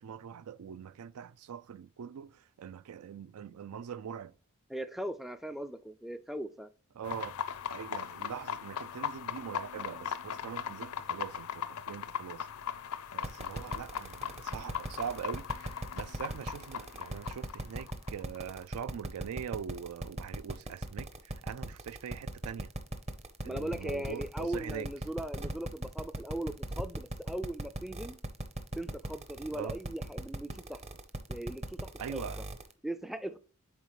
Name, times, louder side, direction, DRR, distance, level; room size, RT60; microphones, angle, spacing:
voice 1, 0.0-4.3 7.0-7.4 7.7-12.5 13.1-22.7 23.4-24.9 29.5-29.7 32.0-32.4, right 8 dB, 75° right, 0.4 m, -42 dB
voice 2, 4.7-6.7 23.5-28.2 28.7-30.8 31.3-32.3 32.8-33.4, right 1 dB, ahead, 0.4 m, -39 dB
sound 1, 7.0-18.5, left 8 dB, 70° left, 0.5 m, -39 dB
sound 2, 13.2-32.7, right 1 dB, 30° right, 0.7 m, -38 dB
10.0 x 4.1 x 3.1 m
head